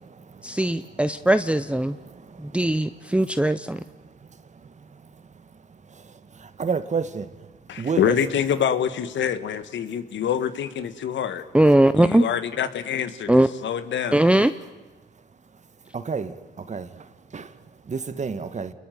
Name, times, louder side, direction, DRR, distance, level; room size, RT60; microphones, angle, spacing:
voice 1, 0.4-2.0 2.4-3.8 11.5-12.2 13.3-13.5 14.1-14.5, right 1 dB, 5° right, 0.8 m, -19 dB
voice 2, 6.6-7.3 7.8-8.2 15.9-16.3 16.7-16.9 17.3-17.5 17.9-18.7, right 5 dB, 35° right, 2.0 m, -28 dB
voice 3, 7.7-11.5 12.0-14.2, left 8 dB, 70° left, 1.8 m, -26 dB
29.0 x 21.5 x 9.4 m
cardioid pair, 90°, 20 cm